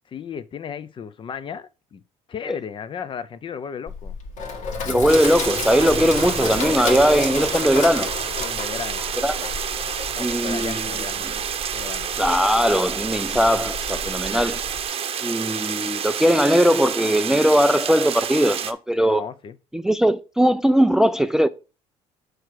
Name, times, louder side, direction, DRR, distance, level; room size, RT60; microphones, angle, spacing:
voice 1, 0.1-2.0 2.3-4.1 8.4-9.0 10.1-11.3 11.7-12.2 19.1-19.6, left 7 dB, 40° left, 0.6 m, -34 dB
Sink (filling or washing), 3.9-14.9, left 4 dB, 65° left, 1.7 m, -32 dB
voice 2, 4.9-8.1 9.2-9.4 10.2-10.9 12.2-14.6 15.2-19.2 19.7-21.5, equal, 5° right, 0.4 m, -19 dB
sound 1, 5.1-18.7, right 8 dB, 45° right, 0.8 m, -29 dB
6.5 x 4.7 x 4.6 m
cardioid pair, 95°, 13 cm